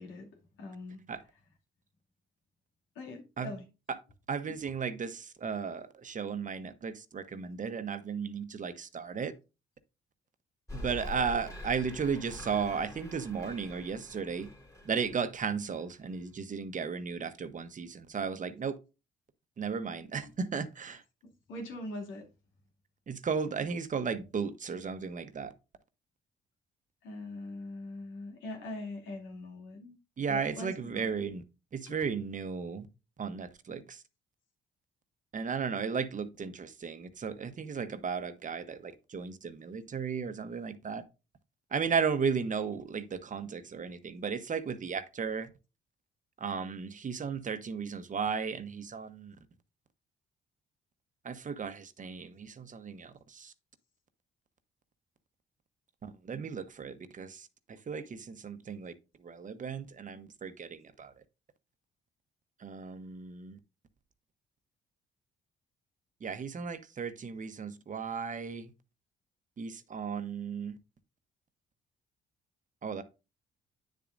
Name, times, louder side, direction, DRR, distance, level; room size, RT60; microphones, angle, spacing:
voice 1, 0.0-1.4 2.9-3.7 4.5-4.6 20.2-20.3 20.9-22.3 27.0-30.0 30.3-31.1 31.9-32.0, left 2 dB, 85° left, 2.5 m, -43 dB
voice 2, 4.3-9.3 10.7-14.5 14.8-18.8 19.6-21.0 23.1-25.5 30.2-31.4 31.7-32.9 33.2-34.0 35.3-41.0 41.7-45.5 46.4-49.4 51.2-53.5 56.0-58.9 59.2-61.1 62.6-63.6 66.2-68.7 69.6-70.8 72.8-73.0, right 6 dB, 40° right, 1.0 m, -35 dB
sound 1, 10.7-16.1, left 1 dB, 15° left, 2.4 m, -45 dB
9.3 x 7.0 x 2.6 m
cardioid pair, 90°, 20 cm